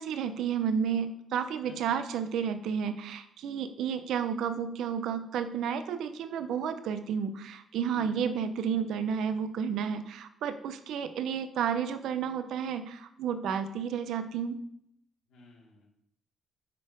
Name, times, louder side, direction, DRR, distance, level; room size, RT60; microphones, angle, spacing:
voice 1, 0.0-14.6, right 7 dB, 80° right, 10 dB, 0.5 m, -31 dB
voice 2, 15.3-15.9, left 3 dB, 80° left, -3 dB, 2.3 m, -52 dB
5.5 x 4.2 x 5.0 m, 0.73 s
cardioid pair, 90°, 0 cm